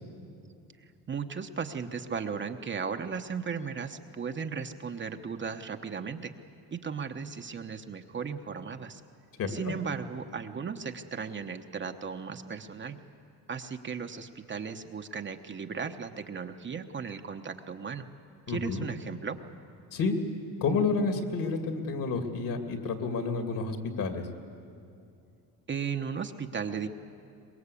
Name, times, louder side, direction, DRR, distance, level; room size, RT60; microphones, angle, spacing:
voice 1, 1.1-6.3 6.7-9.0 9.5-13.0 13.5-18.1 18.5-19.4 25.7-26.9, right 6 dB, 30° right, 6 dB, 0.9 m, -36 dB
voice 2, 9.4-9.7 18.5-18.8 19.9-20.2 20.6-24.3, left 4 dB, 55° left, 6 dB, 2.6 m, -30 dB
23.5 x 21.0 x 8.4 m, 2.5 s
cardioid pair, 125°, 38 cm